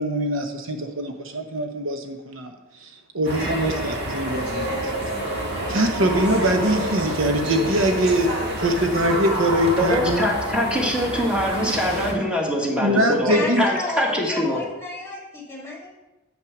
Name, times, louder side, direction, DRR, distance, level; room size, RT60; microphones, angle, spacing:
voice 1, 0.0-2.5 2.8-2.9 3.1-4.9 5.7-10.2 12.8-13.7, right 1 dB, 70° right, 5 dB, 0.9 m, -23 dB
sound 1, 3.2-12.1, equal, 55° right, 1.8 m, -28 dB
voice 2, 9.8-14.6, equal, 5° right, -2 dB, 1.7 m, -23 dB
voice 3, 13.3-15.9, left 2 dB, 10° left, -2 dB, 2.1 m, -32 dB
7.7 x 5.9 x 6.0 m, 1.0 s
head